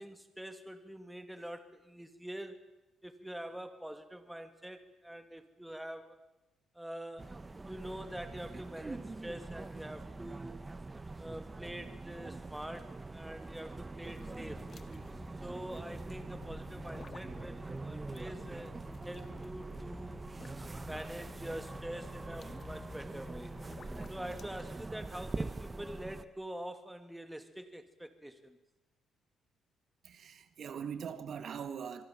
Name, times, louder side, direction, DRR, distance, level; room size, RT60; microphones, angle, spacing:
voice 1, 0.0-2.6 3.0-6.2 6.7-10.6 11.2-14.7 15.4-18.7 19.0-20.3 20.8-23.5 24.1-28.6, right 1 dB, 5° right, 2.5 m, -45 dB
sound 1, 7.2-26.2, right 3 dB, 20° right, 1.1 m, -44 dB
sound 2, 14.0-24.5, left 6 dB, 50° left, 1.9 m, -54 dB
voice 2, 30.0-32.0, right 7 dB, 60° right, 1.7 m, -41 dB
26.0 x 23.0 x 7.4 m
cardioid pair, 90°, 0 cm